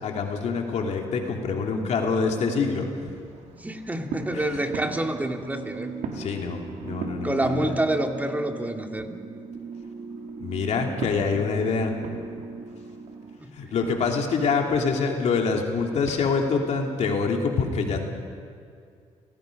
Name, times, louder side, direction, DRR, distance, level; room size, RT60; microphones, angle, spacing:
voice 1, 0.0-2.9 4.3-4.6 6.2-7.8 10.4-11.9 13.5-18.0, left 5 dB, 65° left, 2 dB, 2.9 m, -25 dB
sound 1, 2.5-8.4 8.8-16.3, right 5 dB, 85° right, 2.5 m, -42 dB
voice 2, 3.5-5.9 7.2-9.1 13.4-13.5, right 1 dB, 15° right, 3 dB, 2.2 m, -27 dB
sound 2, 4.7-13.4, right 5 dB, 40° right, 1.3 m, -39 dB
29.5 x 18.0 x 5.3 m, 2.2 s
cardioid pair, 85°, 12 cm